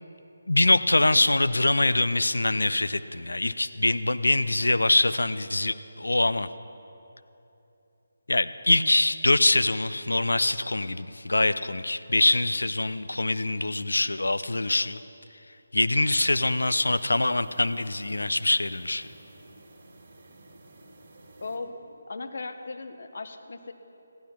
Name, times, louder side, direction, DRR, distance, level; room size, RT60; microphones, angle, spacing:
voice 1, 0.5-6.5 8.3-15.0 15.7-19.1, left 2 dB, 70° left, 13 dB, 0.5 m, -24 dB
sound 1, 16.3-21.6, right 2 dB, 40° right, 2.1 m, -52 dB
voice 2, 21.4-23.7, left 3 dB, 50° left, 8 dB, 0.9 m, -37 dB
15.5 x 11.5 x 5.8 m, 2.9 s
figure-of-eight pair, 150°, 0 cm